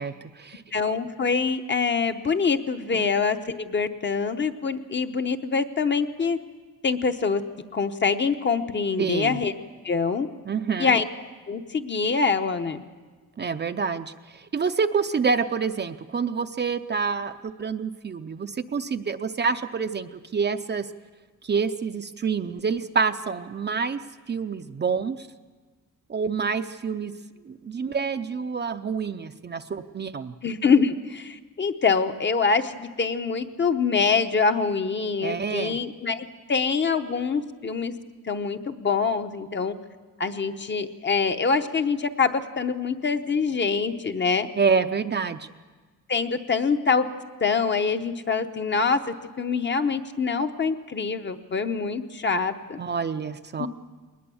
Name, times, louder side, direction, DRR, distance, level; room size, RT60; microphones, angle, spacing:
voice 1, 0.0-0.6 2.9-3.0 9.0-9.4 10.5-10.9 13.4-20.9 21.4-24.0 24.3-25.3 26.1-27.1 27.4-30.3 35.2-35.8 44.6-45.5 52.8-53.7, right 5 dB, 35° right, 9 dB, 0.5 m, -27 dB
voice 2, 0.7-6.4 6.8-7.4 7.7-9.5 9.8-10.3 10.8-11.0 11.5-12.8 30.4-37.9 38.2-39.8 40.2-44.5 46.1-47.1 47.4-49.0 49.4-52.8 53.6-53.7, left 5 dB, 35° left, 8 dB, 0.9 m, -25 dB
20.0 x 20.0 x 7.0 m, 1.4 s
wide cardioid pair, 160°, 32 cm